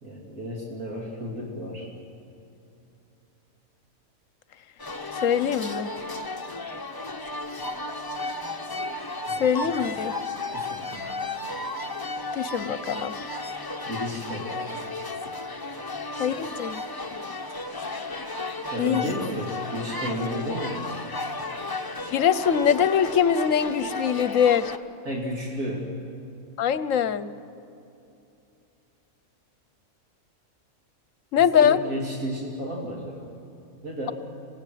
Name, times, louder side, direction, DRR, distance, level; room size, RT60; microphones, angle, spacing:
voice 1, 0.0-1.9 9.2-9.8 10.5-11.0 13.8-14.5 18.7-20.9 25.0-26.0 31.6-33.3 33.8-34.1, equal, 75° right, -2 dB, 3.0 m, -32 dB
sound 1, 4.8-24.8, left 2 dB, 20° left, 0.9 m, -34 dB
voice 2, 5.2-5.9 9.4-10.1 12.3-13.1 16.2-16.8 18.8-19.0 22.1-24.7 26.6-27.3 31.3-31.8, left 8 dB, 65° left, 15 dB, 1.1 m, -22 dB
25.5 x 18.0 x 9.2 m, 2.8 s
omnidirectional pair, 1.5 m